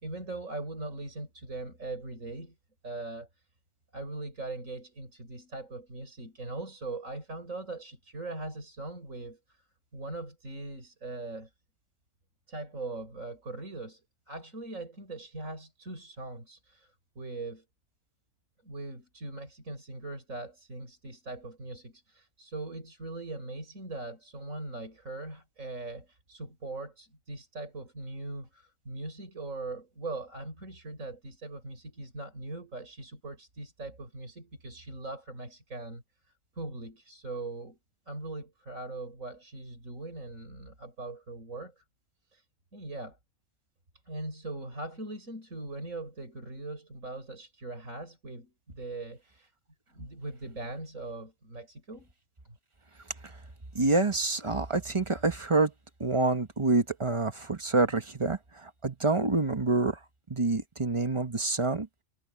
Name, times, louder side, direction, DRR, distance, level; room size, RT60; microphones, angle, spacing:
voice 1, 0.0-2.6 2.8-3.3 3.9-9.6 9.9-11.5 12.5-17.6 18.6-36.0 36.6-37.8 38.1-41.8 42.3-42.4 42.7-43.2 44.1-49.5 49.9-52.1 52.5-52.6, right 2 dB, 85° right, 6.0 m, -40 dB
voice 2, 53.7-55.7 56.0-60.0 60.3-61.9, right 3 dB, 25° right, 1.2 m, -27 dB
omnidirectional pair, 1.3 m